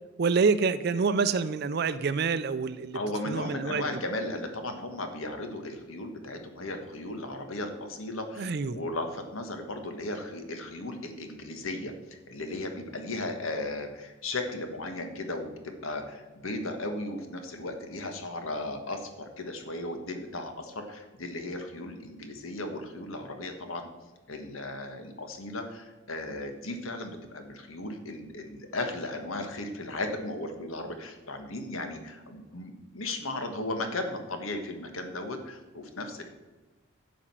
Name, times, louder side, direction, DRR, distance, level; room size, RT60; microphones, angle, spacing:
voice 1, 0.2-3.0 3.3-3.9 8.4-8.8, right 5 dB, 50° right, 12 dB, 0.4 m, -27 dB
voice 2, 2.9-15.5 15.8-23.9 24.3-36.3, left 2 dB, 85° left, 6 dB, 1.5 m, -36 dB
10.0 x 5.2 x 7.5 m, 1.2 s
head